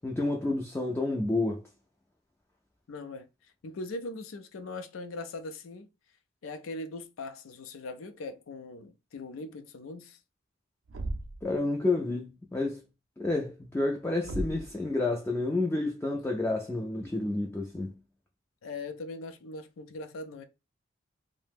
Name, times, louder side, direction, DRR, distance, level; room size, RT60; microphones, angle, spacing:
voice 1, 0.0-1.6 11.4-12.8 13.2-17.9, left 2 dB, 10° left, 0.3 m, -30 dB
voice 2, 2.9-3.3 3.6-5.9 6.4-10.2 18.6-20.4, left 2 dB, 80° left, 0.4 m, -40 dB
Thump thud, 10.9-11.5 14.2-14.8, right 1 dB, 75° right, 0.4 m, -35 dB
2.6 x 2.0 x 3.4 m
head